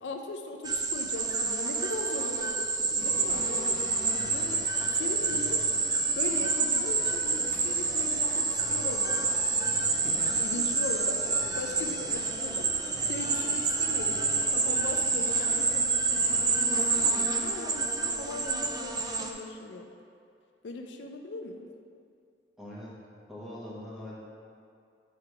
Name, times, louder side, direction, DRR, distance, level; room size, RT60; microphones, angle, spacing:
voice 1, 0.0-4.6 4.9-5.6 6.2-9.7 10.4-19.9 20.6-21.7, left 2 dB, 85° left, 4 dB, 0.5 m, -39 dB
sound 1, 0.6-19.3, right 4 dB, 20° right, 0.5 m, -28 dB
sound 2, 3.0-17.1, left 1 dB, 15° left, 1.0 m, -44 dB
voice 2, 22.6-23.0 23.3-24.1, left 1 dB, ahead, -8 dB, 1.4 m, -42 dB
8.5 x 3.5 x 4.7 m, 2.4 s
head